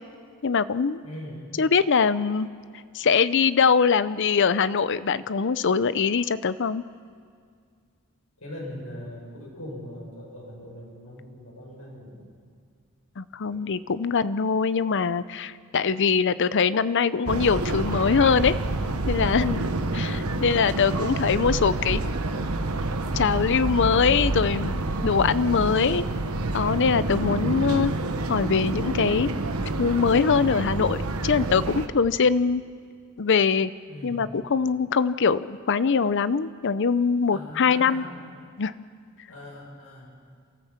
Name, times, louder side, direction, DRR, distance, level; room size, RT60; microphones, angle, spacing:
voice 1, 0.4-1.0 1.6-2.5 2.9-6.8 13.2-18.6 19.1-22.0 23.1-26.0 26.5-27.9 28.3-29.3 29.8-32.6 33.2-33.7 34.0-38.0 38.6-38.7, left 5 dB, 55° left, 15 dB, 0.6 m, -23 dB
voice 2, 1.0-1.4 8.4-12.3 13.4-13.6 33.8-34.3 37.3-38.2 39.3-40.1, left 1 dB, 85° left, -3 dB, 7.0 m, -40 dB
sound 1, 17.3-31.9, right 2 dB, 85° right, 1.2 m, -28 dB
29.0 x 14.0 x 7.3 m, 2.1 s
head